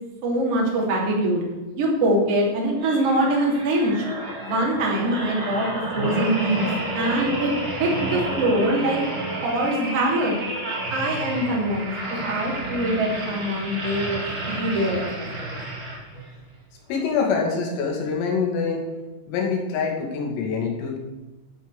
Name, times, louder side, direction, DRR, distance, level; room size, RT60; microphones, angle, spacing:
voice 1, 0.2-1.4 1.8-4.0 4.4-5.7 5.9-6.7 6.9-7.5 7.8-9.0 9.4-10.4 10.9-11.9 12.2-14.2 14.5-15.6, right 1 dB, 35° right, -2 dB, 2.9 m, -23 dB
sound 1, 2.8-16.3 16.9-17.1, right 1 dB, 55° right, 0.6 m, -31 dB
voice 2, 16.9-18.8 19.3-21.0, left 5 dB, 90° left, -1 dB, 5.0 m, -25 dB
12.5 x 6.6 x 7.0 m, 1.2 s
omnidirectional pair, 5.8 m